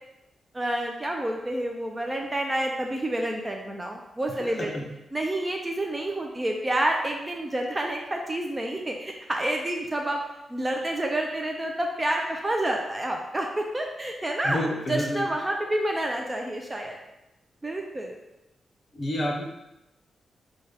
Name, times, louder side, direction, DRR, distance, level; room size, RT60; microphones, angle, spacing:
voice 1, 0.5-4.7 5.1-10.2 10.5-14.6 14.9-17.0 17.6-18.2, right 1 dB, 15° right, 1 dB, 0.4 m, -29 dB
voice 2, 4.4-4.9 14.4-15.2 18.9-19.4, left 1 dB, 35° left, 0 dB, 0.7 m, -29 dB
5.5 x 2.3 x 3.3 m, 0.92 s
wide cardioid pair, 145°, 0 cm